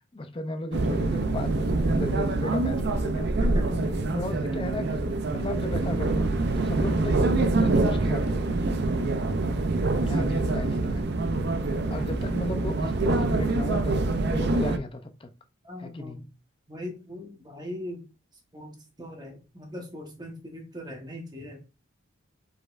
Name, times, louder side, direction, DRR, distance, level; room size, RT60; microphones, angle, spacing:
voice 1, 0.1-3.3 4.1-5.0 5.3-6.3 6.6-8.7 10.1-11.1 11.9-14.0 14.3-15.3 15.8-16.2, left 1 dB, 25° left, 0.5 m, -35 dB
sound 1, 0.7-14.8, right 2 dB, 50° right, 0.4 m, -25 dB
voice 2, 3.4-4.0 15.6-16.2 16.7-18.0 18.5-21.6, left 1 dB, 20° right, 1.0 m, -39 dB
5.0 x 4.2 x 2.4 m
head